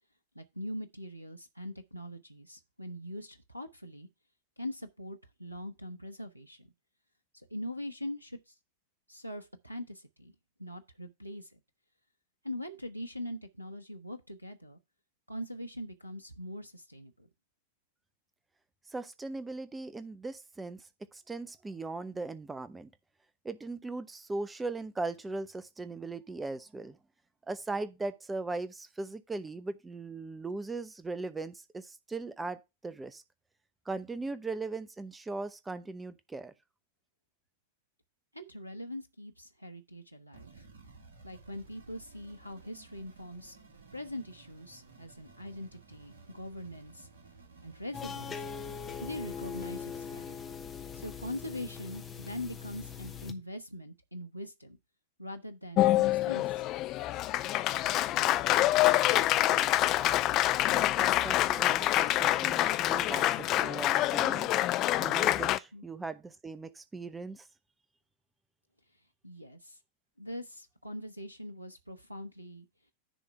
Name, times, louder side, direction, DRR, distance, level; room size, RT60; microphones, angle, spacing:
voice 1, 0.3-4.1 4.6-6.7 7.3-8.5 9.1-10.3 10.6-11.6 12.4-14.8 15.3-17.3 38.3-40.7 41.2-43.6 43.9-47.1 47.6-48.4 49.0-50.5 50.9-54.8 55.2-56.6 65.7-65.8 69.2-69.8 70.2-72.7, left 1 dB, 90° right, 0.8 m, -42 dB
voice 2, 18.9-22.9 23.4-27.0 27.5-33.2 33.9-36.5 59.4-60.3 60.7-64.5 65.0-67.5, right 3 dB, 10° right, 0.7 m, -39 dB
sound 1, 40.3-50.3, right 4 dB, 65° right, 2.3 m, -56 dB
sound 2, 47.9-53.3, left 6 dB, 20° left, 1.4 m, -41 dB
Applause, 55.8-65.6, left 15 dB, 35° left, 0.5 m, -26 dB
10.0 x 3.5 x 5.5 m
figure-of-eight pair, 90°, 0 cm